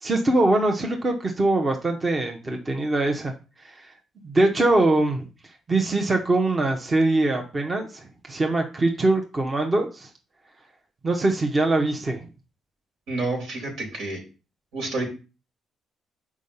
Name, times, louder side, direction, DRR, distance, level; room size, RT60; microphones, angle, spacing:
voice 1, 0.0-3.3 3.6-3.9 4.2-5.2 5.7-10.1 11.0-12.3, right 2 dB, 30° right, 3 dB, 1.1 m, -23 dB
voice 2, 13.1-14.2 14.7-15.1, right 2 dB, 80° right, 1 dB, 3.6 m, -29 dB
6.1 x 4.9 x 5.5 m, 0.32 s
cardioid pair, 90°, 0 cm